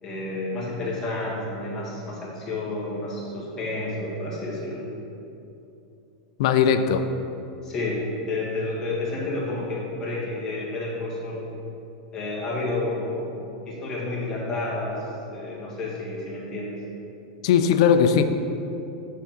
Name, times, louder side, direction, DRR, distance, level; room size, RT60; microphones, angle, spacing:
voice 1, 0.0-4.9 7.6-11.5 12.1-13.3 13.6-16.8, left 2 dB, 15° left, -6 dB, 1.5 m, -30 dB
voice 2, 6.4-7.0 17.4-18.2, left 7 dB, 50° left, 8 dB, 0.4 m, -19 dB
8.3 x 3.6 x 5.9 m, 2.8 s
supercardioid pair, 170°, 4 cm